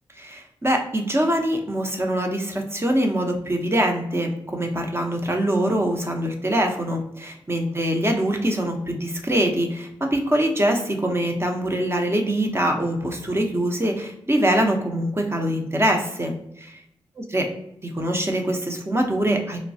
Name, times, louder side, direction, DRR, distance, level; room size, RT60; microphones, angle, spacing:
voice 1, 0.2-16.8 17.2-17.5 17.8-19.6, right 1 dB, 25° right, 2 dB, 0.7 m, -23 dB
3.1 x 2.2 x 2.6 m, 0.76 s
cardioid pair, 45°, 10 cm